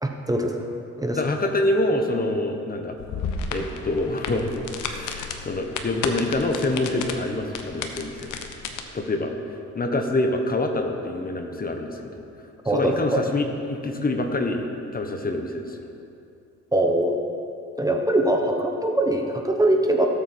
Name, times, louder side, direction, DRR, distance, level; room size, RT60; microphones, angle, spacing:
voice 1, 0.0-0.6 1.0-1.2 12.6-13.2 16.7-17.1 17.8-20.1, right 1 dB, 10° right, 3 dB, 1.0 m, -22 dB
voice 2, 1.1-3.0 3.5-8.4 8.9-9.3 9.7-12.2 12.7-15.8, left 2 dB, 30° left, 4 dB, 1.3 m, -26 dB
sound 1, 3.0-8.8, left 5 dB, 80° left, 1.1 m, -33 dB
17.5 x 8.2 x 4.5 m, 2.6 s
cardioid pair, 90°, 30 cm